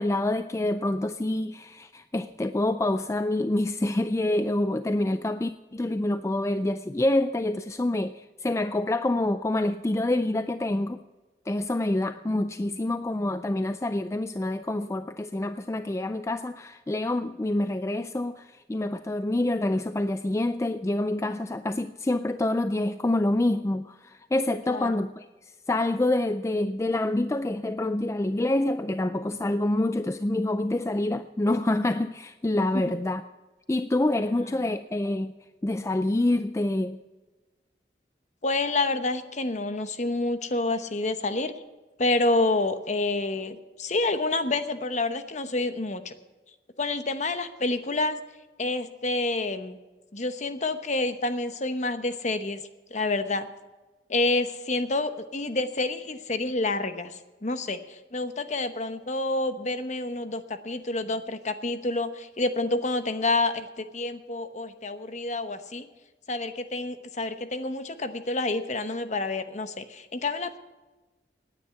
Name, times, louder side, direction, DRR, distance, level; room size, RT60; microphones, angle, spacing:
voice 1, 0.0-11.0 11.5-25.3 25.7-33.2 33.7-35.3 35.6-37.0, left 1 dB, 15° left, 0.4 m, -27 dB
voice 2, 24.7-25.1 32.7-32.8 34.3-34.8 38.4-41.5 42.0-46.1 46.8-48.2 48.6-49.8 50.1-52.6 52.9-53.5 54.1-65.9 66.3-70.6, left 2 dB, 40° left, 1.0 m, -28 dB
18.0 x 9.8 x 5.8 m
head